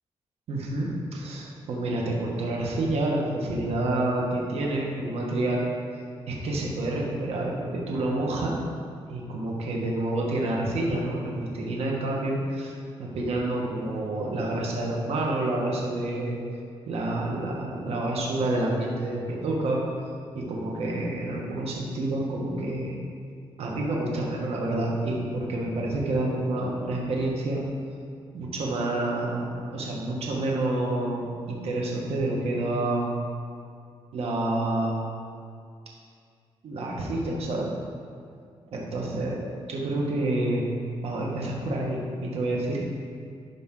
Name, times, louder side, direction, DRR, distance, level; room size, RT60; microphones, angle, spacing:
voice 1, 0.5-5.6 6.3-8.5 9.1-12.7 13.0-16.3 16.9-19.8 20.3-23.0 23.6-27.6 28.3-29.5 29.7-33.1 34.1-35.0 36.6-37.7 38.9-40.6 41.0-42.8, right 2 dB, 75° right, -2 dB, 1.5 m, -28 dB
12.0 x 5.4 x 3.8 m, 2.2 s
cardioid pair, 95°, 10 cm